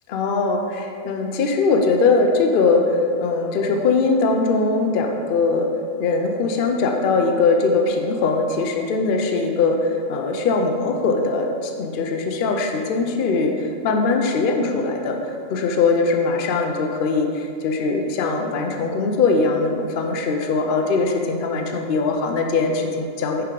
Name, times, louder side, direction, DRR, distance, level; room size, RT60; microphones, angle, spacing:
voice 1, 0.1-5.7 6.0-23.4, left 3 dB, 65° left, 3 dB, 0.5 m, -21 dB
5.8 x 3.5 x 5.1 m, 2.4 s
omnidirectional pair, 1.4 m